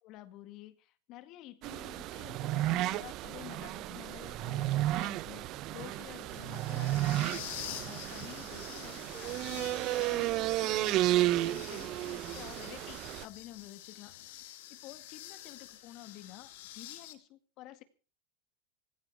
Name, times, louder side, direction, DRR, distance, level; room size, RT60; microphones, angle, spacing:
voice 1, 0.0-5.5 5.7-14.4 14.7-17.8, left 15 dB, 45° left, 11 dB, 1.9 m, -50 dB
sound 1, 1.6-13.2, right 15 dB, 45° right, 0.8 m, -33 dB
sound 2, 4.0-17.1, left 14 dB, 70° left, 2.4 m, -48 dB
18.0 x 15.5 x 4.7 m, 0.36 s
supercardioid pair, 120°, 0 cm